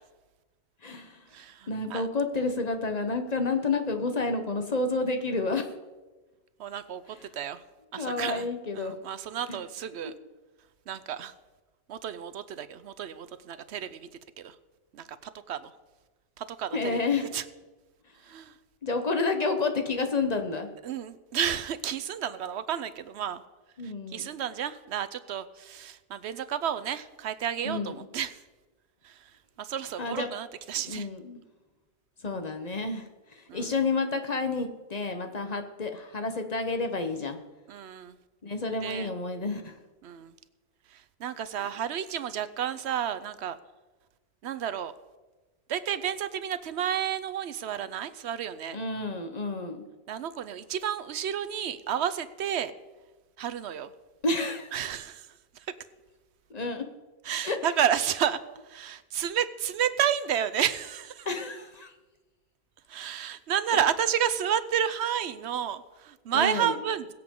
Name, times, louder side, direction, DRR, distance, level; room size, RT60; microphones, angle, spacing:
voice 1, 0.8-1.2 1.7-5.7 8.0-8.9 9.5-9.6 16.7-17.3 18.8-20.7 23.8-24.3 27.6-28.0 30.0-30.3 30.9-31.4 32.2-37.4 38.4-39.8 41.5-41.7 48.7-49.8 54.2-54.7 56.5-56.8 57.4-57.6 61.2-61.9 63.7-63.8 66.3-66.7, left 3 dB, 40° left, 6 dB, 1.1 m, -30 dB
voice 2, 1.3-2.1 6.6-7.0 7.3-7.6 7.9-8.5 8.7-10.1 10.9-11.3 11.9-14.1 14.4-14.5 14.9-15.0 15.5-15.7 16.4-17.0 17.3-17.4 18.2-18.5 20.8-23.4 23.8-28.4 29.0-29.2 29.6-31.1 33.5-33.7 37.7-38.2 38.8-39.1 40.0-40.3 40.9-43.6 44.4-44.9 45.7-48.8 50.1-52.7 53.4-53.9 54.7-55.3 57.2-61.3 62.9-67.1, right 9 dB, 85° right, 13 dB, 1.0 m, -31 dB
21.5 x 7.8 x 3.7 m, 1.2 s
omnidirectional pair, 1.1 m